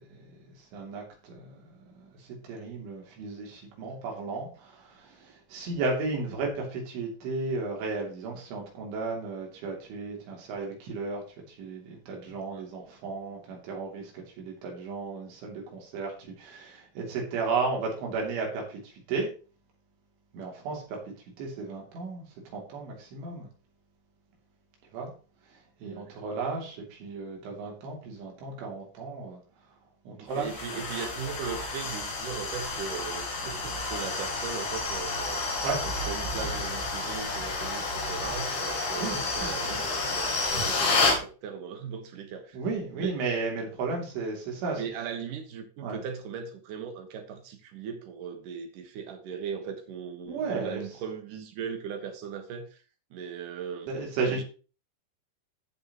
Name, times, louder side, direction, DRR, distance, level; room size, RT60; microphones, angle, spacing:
voice 1, 0.1-19.3 20.3-21.0 21.4-22.2 22.5-23.5 24.9-25.1 25.5-29.4 30.1-30.5 33.5-33.8 35.6-35.8 39.0-39.8 42.5-44.8 45.8-46.0 50.3-50.8 53.9-54.4, right 4 dB, 85° right, 0 dB, 5.3 m, -34 dB
voice 2, 25.8-26.2 30.2-42.6 43.0-43.2 44.8-52.8 53.1-53.9 54.3-54.4, right 7 dB, 60° right, 6 dB, 2.3 m, -38 dB
sound 1, 30.3-41.2, left 3 dB, 65° left, 5.2 m, -30 dB
16.0 x 6.0 x 3.0 m, 0.36 s
omnidirectional pair, 5.3 m